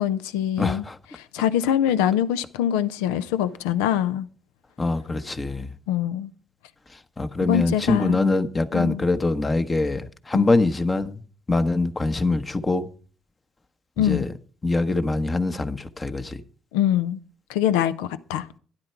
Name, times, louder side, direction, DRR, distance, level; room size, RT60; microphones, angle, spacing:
voice 1, 0.0-0.9 1.2-4.3 5.9-6.3 7.4-8.2 8.7-9.0 10.3-10.5 14.0-14.3 16.7-17.2 17.5-18.5, left 10 dB, 85° left, 0.6 m, -24 dB
voice 2, 0.6-1.0 4.8-5.7 7.2-11.2 11.5-12.9 14.0-14.3 14.6-16.4, left 2 dB, 30° left, 1.2 m, -23 dB
12.0 x 10.5 x 4.6 m
hypercardioid pair, 50°, 0 cm